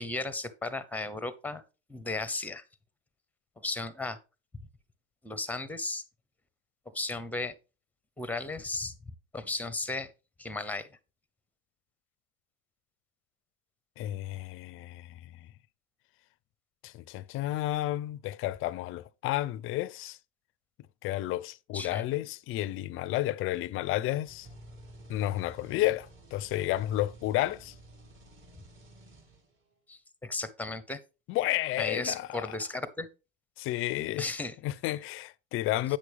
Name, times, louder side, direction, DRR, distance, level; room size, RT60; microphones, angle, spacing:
voice 1, 0.0-1.6 1.9-2.6 3.6-4.2 4.5-4.6 5.2-6.0 6.9-7.5 8.2-8.9 9.3-10.1 10.4-10.9 21.7-22.0 29.9-31.0 31.8-33.1 34.2-34.6, left 3 dB, 5° left, 0.8 m, -35 dB
voice 2, 14.0-15.3 16.8-20.2 21.0-24.5 25.1-27.7 31.3-32.4 33.6-34.3 34.6-36.0, left 15 dB, 35° left, 0.5 m, -31 dB
sound 1, 24.2-29.7, right 1 dB, 35° right, 2.5 m, -52 dB
8.8 x 6.1 x 3.4 m
supercardioid pair, 110°, 36 cm